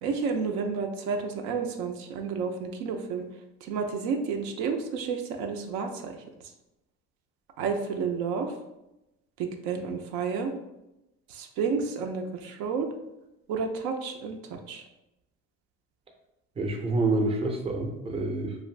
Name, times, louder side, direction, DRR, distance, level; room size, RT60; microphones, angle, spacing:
voice 1, 0.0-3.3 3.7-6.2 7.6-8.5 9.4-10.5 11.3-12.9 13.5-14.8, right 5 dB, 75° right, 4 dB, 0.5 m, -31 dB
voice 2, 16.6-18.6, right 2 dB, 20° right, 3 dB, 0.5 m, -27 dB
2.5 x 2.4 x 3.1 m, 0.92 s
supercardioid pair, 90°, 29 cm